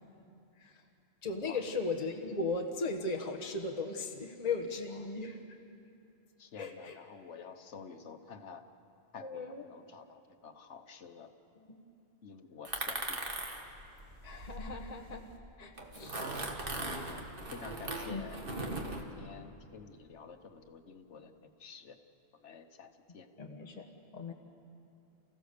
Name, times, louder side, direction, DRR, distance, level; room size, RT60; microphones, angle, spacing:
voice 1, 1.2-5.6 6.6-7.0 9.2-9.6 11.6-11.8 14.2-15.3 15.6-16.2 18.1-18.3 23.4-23.9 24.1-24.3, left 3 dB, 35° left, 2 dB, 1.3 m, -37 dB
voice 2, 6.4-8.6 9.1-11.3 12.2-13.2 16.8-17.0 17.5-18.4 18.9-22.0 22.4-23.3, left 6 dB, 80° left, 8 dB, 1.4 m, -50 dB
sound 1, 12.6-15.3 15.8-19.0, right 2 dB, 50° right, 1.9 m, -39 dB
29.0 x 16.0 x 6.8 m, 2.6 s
omnidirectional pair, 1.2 m